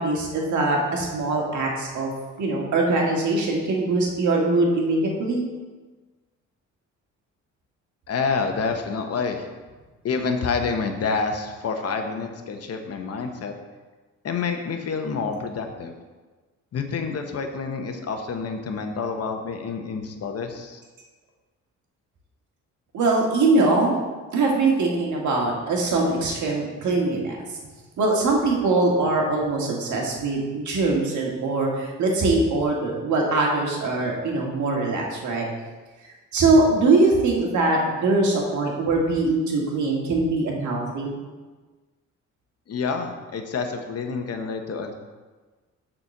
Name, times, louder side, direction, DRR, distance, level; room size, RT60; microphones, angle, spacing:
voice 1, 0.0-2.1 2.4-5.4 22.9-23.9 24.3-27.4 28.0-35.5 36.3-41.1, right 2 dB, 70° right, -1 dB, 2.0 m, -22 dB
voice 2, 8.1-9.4 10.0-13.5 14.2-15.9 16.7-20.8 42.7-44.9, left 5 dB, 55° left, 5 dB, 1.0 m, -28 dB
6.9 x 4.4 x 6.6 m, 1.3 s
cardioid pair, 90°, 30 cm